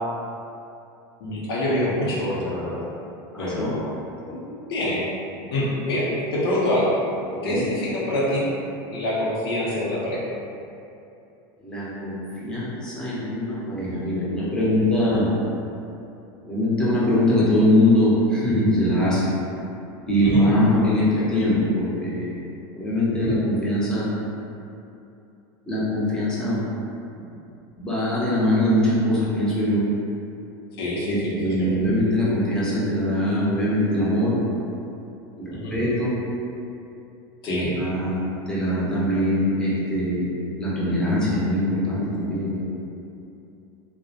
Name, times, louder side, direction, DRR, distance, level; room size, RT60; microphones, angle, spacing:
voice 1, 1.2-2.8 3.4-3.9 4.3-5.0 5.5-6.9 7.4-8.5 8.9-10.2 20.2-20.4 21.2-21.3 23.1-23.3 30.8-31.8 35.5-35.7 37.4-37.7, left 1 dB, 85° left, -7 dB, 0.7 m, -26 dB
voice 2, 3.3-3.7 7.4-7.6 11.6-15.3 16.4-19.3 20.1-22.3 22.7-24.1 25.7-26.6 27.8-29.8 31.1-34.4 35.4-36.2 37.4-38.2 38.5-40.3 40.6-42.6, left 1 dB, 5° left, -9 dB, 0.6 m, -22 dB
2.3 x 2.1 x 2.7 m, 2.7 s
supercardioid pair, 130°, 12 cm